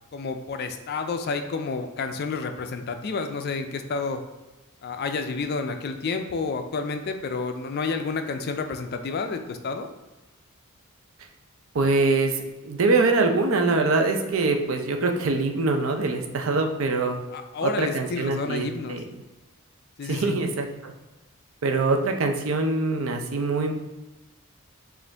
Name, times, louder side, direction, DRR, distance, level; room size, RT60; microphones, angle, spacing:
voice 1, 0.1-4.2 4.8-9.9 17.3-19.0 20.0-20.4, left 4 dB, 45° left, 7 dB, 0.3 m, -30 dB
voice 2, 11.7-17.2 17.6-19.0 20.1-20.9 21.6-23.7, right 3 dB, 65° right, 4 dB, 0.5 m, -24 dB
5.1 x 2.5 x 3.3 m, 1.1 s
head